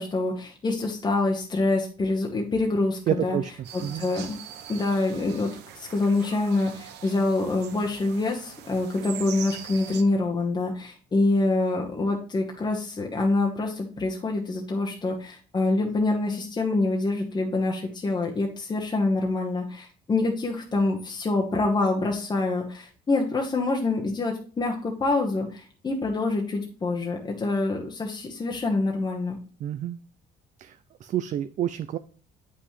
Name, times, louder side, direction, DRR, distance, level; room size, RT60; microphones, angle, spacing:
voice 1, 0.0-3.4 3.7-4.4 4.7-5.5 5.7-29.4, left 2 dB, 25° left, 0 dB, 1.1 m, -26 dB
voice 2, 3.1-3.5 3.8-4.1 29.6-30.0 30.6-32.0, right 11 dB, 45° right, 11 dB, 0.4 m, -29 dB
sound 1, 3.6-10.0, right 10 dB, 85° right, 0.8 m, -42 dB
8.0 x 5.6 x 3.1 m, 0.43 s
cardioid pair, 110°, 17 cm